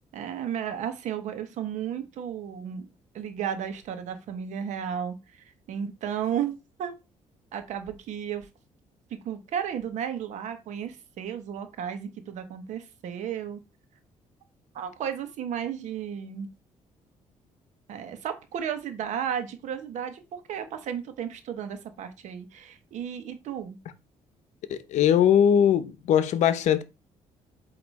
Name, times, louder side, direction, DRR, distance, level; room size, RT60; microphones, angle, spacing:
voice 1, 0.1-2.9 3.1-7.0 7.5-8.5 9.1-13.6 14.7-16.5 17.9-23.8, right 8 dB, 75° right, 1.2 m, -34 dB
voice 2, 24.7-26.8, left 9 dB, 75° left, 0.7 m, -21 dB
8.2 x 2.9 x 4.1 m
cardioid pair, 120°, 12 cm